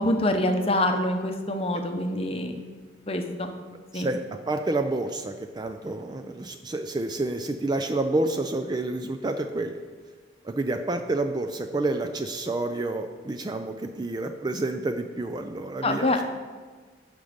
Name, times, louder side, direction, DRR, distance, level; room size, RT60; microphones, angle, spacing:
voice 1, 0.0-2.5 3.1-3.5 3.9-4.1 15.8-16.3, left 1 dB, 30° left, 5 dB, 0.8 m, -25 dB
voice 2, 4.5-9.8 10.4-16.1, right 2 dB, 20° right, 7 dB, 0.3 m, -29 dB
11.0 x 5.2 x 5.0 m, 1.5 s
head